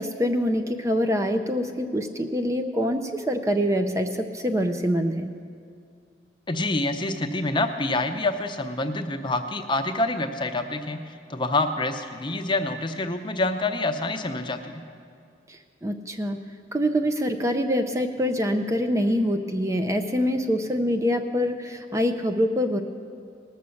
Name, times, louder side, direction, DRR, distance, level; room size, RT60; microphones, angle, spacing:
voice 1, 0.0-5.3 15.5-16.4 16.7-22.8, equal, 15° right, 6 dB, 0.5 m, -25 dB
voice 2, 6.5-14.8, left 2 dB, 25° left, 7 dB, 0.6 m, -27 dB
19.0 x 6.5 x 7.0 m, 2.3 s
head